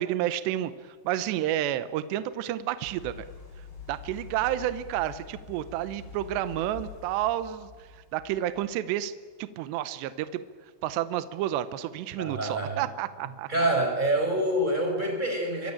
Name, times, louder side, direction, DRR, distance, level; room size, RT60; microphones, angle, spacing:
voice 1, 0.0-3.3 3.9-7.7 8.1-9.1 9.4-10.4 10.8-13.5, right 12 dB, 75° right, 12 dB, 2.7 m, -30 dB
sound 1, 2.9-8.6, left 6 dB, 90° left, 11.0 m, -45 dB
voice 2, 12.2-12.8 13.5-15.7, right 1 dB, 10° right, 3 dB, 4.8 m, -26 dB
25.5 x 23.5 x 8.7 m, 1.5 s
omnidirectional pair, 5.7 m